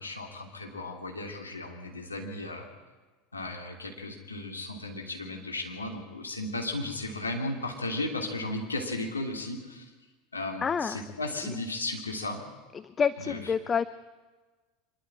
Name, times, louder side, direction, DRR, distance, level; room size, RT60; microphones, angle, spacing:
voice 1, 0.0-2.7 3.3-9.9 10.3-12.4 13.3-13.4, left 2 dB, 85° left, 2 dB, 2.9 m, -35 dB
voice 2, 10.6-11.0 11.4-11.5 12.7-13.8, left 6 dB, 25° left, 15 dB, 0.6 m, -28 dB
25.0 x 12.0 x 8.9 m, 1.3 s
figure-of-eight pair, 75°, 0 cm